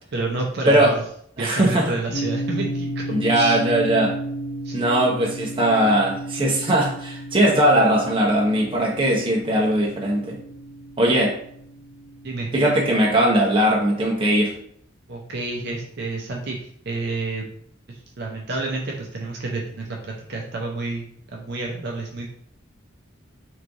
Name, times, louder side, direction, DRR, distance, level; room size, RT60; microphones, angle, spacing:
voice 1, 0.1-1.0 1.4-3.0 3.3-3.6 4.6-4.8 12.2-12.5 15.1-17.4 17.9-22.3, right 3 dB, 55° right, 0 dB, 0.6 m, -29 dB
voice 2, 1.4-1.9 3.1-4.2 4.7-10.4 11.0-11.3 12.5-14.5, right 1 dB, 25° right, -2 dB, 0.9 m, -19 dB
sound 1, 2.1-12.3, right 1 dB, 55° left, 0.6 m, -33 dB
3.6 x 3.2 x 3.9 m, 0.66 s
head